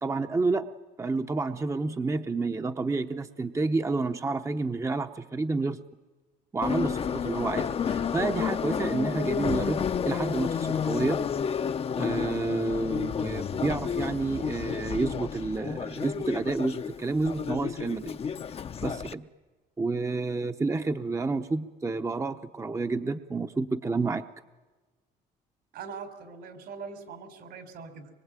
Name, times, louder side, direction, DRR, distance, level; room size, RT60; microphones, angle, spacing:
voice 1, 0.0-0.7 1.0-5.8 6.5-11.2 12.0-18.2 18.8-19.3 19.8-24.3, right 3 dB, 15° right, 7 dB, 0.8 m, -29 dB
Subway metro underground, 6.6-19.1, left 7 dB, 35° left, 0.7 m, -31 dB
voice 2, 25.7-28.1, right 5 dB, 75° right, 8 dB, 4.1 m, -42 dB
24.5 x 22.5 x 9.0 m, 1.3 s
cardioid pair, 110°, 17 cm